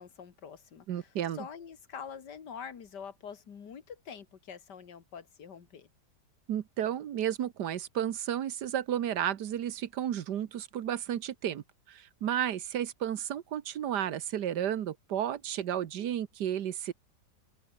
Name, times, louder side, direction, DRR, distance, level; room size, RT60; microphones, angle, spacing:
voice 1, 0.0-5.9, left 7 dB, 80° left, 2.4 m, -45 dB
voice 2, 0.9-1.4 6.5-16.9, right 10 dB, 80° right, 1.6 m, -32 dB
omnidirectional pair, 1.8 m